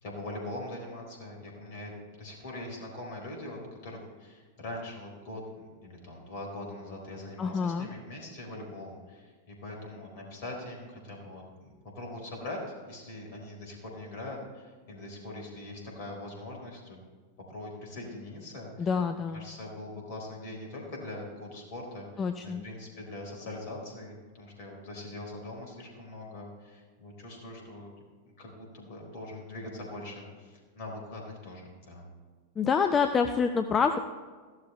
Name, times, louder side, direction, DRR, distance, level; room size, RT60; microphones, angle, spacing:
voice 1, 0.0-1.9 2.2-9.3 9.6-12.6 12.9-17.0 17.5-18.9 19.3-27.9 28.4-32.1, left 2 dB, 50° left, 1 dB, 4.1 m, -42 dB
voice 2, 7.4-7.9 18.8-19.4 22.2-22.6 32.6-34.0, left 6 dB, 20° left, 8 dB, 0.6 m, -27 dB
15.5 x 12.5 x 3.2 m, 1.5 s
figure-of-eight pair, 90°, 0 cm